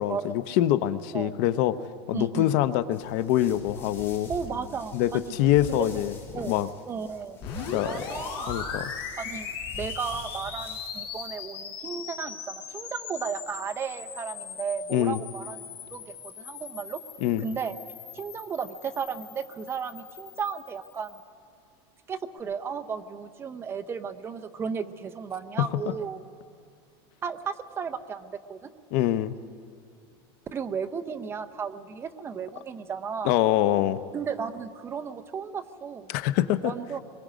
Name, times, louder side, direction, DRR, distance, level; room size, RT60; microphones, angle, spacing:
voice 1, 0.0-1.8 2.1-4.3 4.9-6.1 6.5-6.7 7.7-8.0 8.5-8.9 14.9-15.2 17.2-17.5 25.6-25.7 28.9-29.4 33.2-34.0 36.1-36.7, left 13 dB, 55° left, 12 dB, 0.8 m, -24 dB
voice 2, 2.1-2.5 4.3-5.3 5.7-6.6 6.9-8.5 9.2-9.5 9.7-15.6 15.9-17.0 17.4-17.8 18.1-21.2 22.1-26.3 27.2-28.7 30.5-33.4 34.1-36.1 36.6-37.0, right 6 dB, 20° right, 8 dB, 0.7 m, -34 dB
sound 1, 2.9-11.3, left 3 dB, 15° left, 2.9 m, -45 dB
sound 2, 7.4-21.3, left 6 dB, 35° left, 5.1 m, -39 dB
24.0 x 22.5 x 5.1 m, 2.3 s
supercardioid pair, 160°, 14 cm